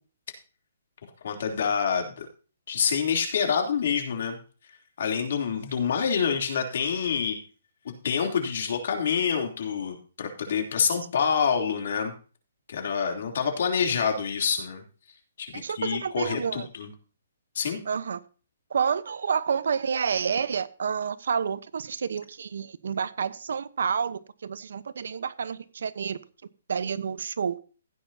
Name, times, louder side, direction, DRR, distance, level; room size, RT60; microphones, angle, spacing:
voice 1, 1.2-2.3 2.7-4.4 5.0-7.4 8.0-12.1 12.7-14.8 15.4-16.9 17.5-17.8, left 6 dB, 55° left, 3.2 m, -27 dB
voice 2, 15.5-16.7 17.8-18.2 18.7-26.2 26.7-27.5, right 6 dB, 70° right, 1.0 m, -29 dB
15.5 x 9.4 x 2.8 m
hypercardioid pair, 165°, 0 cm